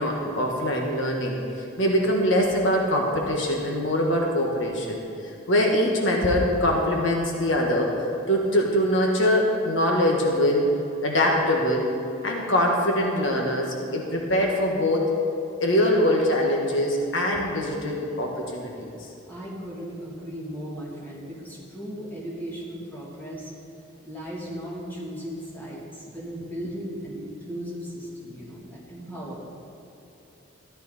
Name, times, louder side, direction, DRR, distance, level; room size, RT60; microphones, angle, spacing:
voice 1, 0.0-10.7 11.0-12.0 12.2-15.1 15.6-19.1, left 1 dB, 70° left, 0 dB, 1.4 m, -23 dB
voice 2, 19.2-23.5 24.0-29.4, equal, 10° left, -6 dB, 2.7 m, -36 dB
13.5 x 11.5 x 4.2 m, 2.9 s
head